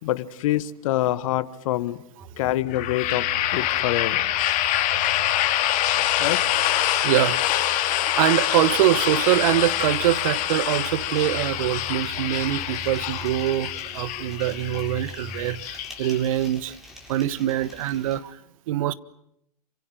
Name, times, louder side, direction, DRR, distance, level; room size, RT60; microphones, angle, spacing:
voice 1, 0.0-2.0 2.4-4.2 6.2-6.4, left 14 dB, 60° left, 1.6 m, -26 dB
sound 1, 2.2-15.6, right 2 dB, 30° right, 5.4 m, -42 dB
sound 2, 2.7-16.5, left 13 dB, 40° left, 3.0 m, -25 dB
voice 2, 7.0-16.8 17.1-18.4 18.7-18.9, right 13 dB, 60° right, 1.3 m, -24 dB
sound 3, 8.6-18.2, left 1 dB, ahead, 7.6 m, -47 dB
27.5 x 25.5 x 7.8 m
hypercardioid pair, 110°, 19 cm